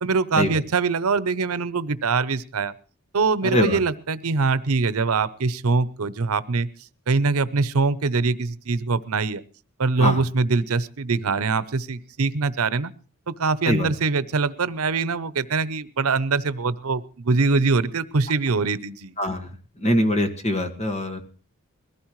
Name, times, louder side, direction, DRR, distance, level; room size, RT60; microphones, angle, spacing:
voice 1, 0.0-2.7 3.1-6.7 7.1-9.4 9.8-12.9 13.3-19.1, right 4 dB, 85° right, 15 dB, 0.7 m, -23 dB
voice 2, 3.4-3.8 10.0-10.2 13.6-13.9 19.2-19.5 19.8-21.2, equal, 30° left, 5 dB, 1.8 m, -23 dB
21.5 x 15.5 x 3.1 m, 0.37 s
head